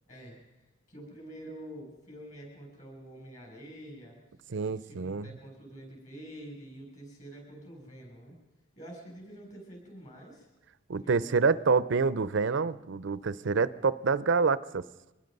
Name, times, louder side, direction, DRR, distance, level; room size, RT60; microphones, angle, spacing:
voice 1, 0.1-4.2 4.6-8.4 8.8-10.5 11.0-11.4, right 1 dB, 40° left, 0 dB, 7.3 m, -47 dB
voice 2, 4.5-5.3 10.9-14.8, right 4 dB, 65° right, 17 dB, 0.6 m, -27 dB
24.5 x 20.0 x 5.4 m, 1.0 s
head